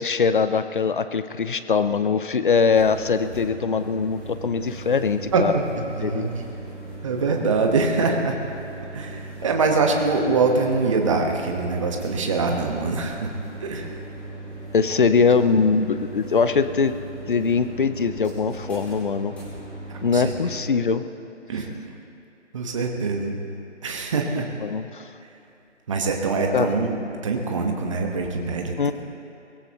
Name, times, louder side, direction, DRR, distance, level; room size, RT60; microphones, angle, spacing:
voice 1, 0.0-5.5 6.0-6.3 14.7-16.9 17.3-19.3 20.0-21.0 24.6-25.1 26.5-26.7 28.8-28.9, left 5 dB, 45° left, 11 dB, 0.7 m, -22 dB
sound 1, 2.5-20.6, right 2 dB, 5° left, 2.1 m, -38 dB
voice 2, 5.3-6.4 7.0-8.4 8.9-13.3 13.6-13.9 19.9-20.3 21.5-21.7 22.5-23.4 23.8-24.5 25.9-26.9 27.2-28.9, right 4 dB, 25° right, 2 dB, 1.3 m, -24 dB
23.0 x 18.0 x 3.0 m, 2.7 s
figure-of-eight pair, 155°, 37 cm